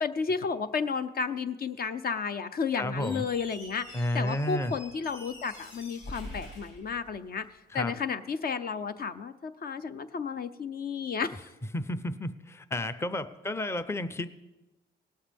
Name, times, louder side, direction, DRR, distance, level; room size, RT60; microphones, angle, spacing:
voice 1, 0.0-7.5 7.7-11.4, left 5 dB, 50° left, 11 dB, 0.7 m, -32 dB
voice 2, 2.7-3.2 3.9-4.7 7.7-7.9 11.7-14.3, left 1 dB, 15° left, 12 dB, 0.6 m, -31 dB
Squeak, 2.9-7.6, left 1 dB, 70° left, 5.5 m, -46 dB
18.5 x 12.5 x 3.5 m, 1.0 s
cardioid pair, 90°, 20 cm